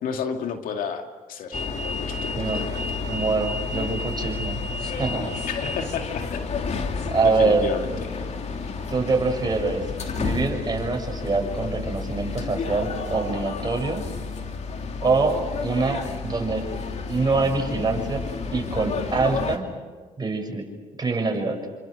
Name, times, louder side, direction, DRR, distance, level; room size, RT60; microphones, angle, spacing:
voice 1, 0.0-2.8 5.4-6.4 7.2-8.1, left 6 dB, 70° left, 5 dB, 2.2 m, -32 dB
sound 1, 1.5-19.6, left 4 dB, 50° left, 2.7 m, -31 dB
voice 2, 3.1-5.3 7.1-7.7 8.9-9.8 10.1-14.0 15.0-16.7 17.1-18.2 18.5-19.7 20.2-20.7 21.0-21.6, right 3 dB, 30° right, 3 dB, 6.6 m, -25 dB
29.0 x 26.0 x 6.6 m, 1.4 s
supercardioid pair, 70°, 15 cm